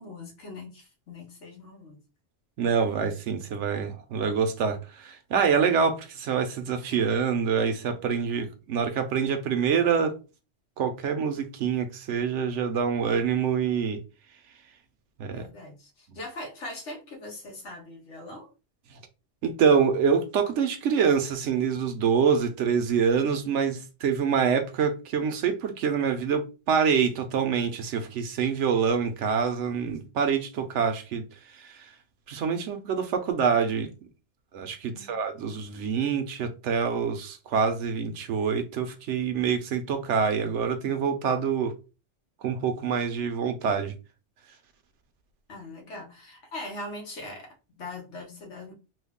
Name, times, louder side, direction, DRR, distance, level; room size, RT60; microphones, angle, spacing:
voice 1, 0.0-2.0 15.3-18.5 34.8-35.2 45.5-48.7, left 2 dB, 90° left, 1.4 m, -41 dB
voice 2, 2.6-10.2 10.8-14.0 15.2-15.5 19.4-31.2 31.5-31.9 32.3-33.9 34.5-41.7 42.4-43.9, right 6 dB, 80° right, 1.0 m, -26 dB
3.2 x 2.2 x 3.5 m
omnidirectional pair, 1.2 m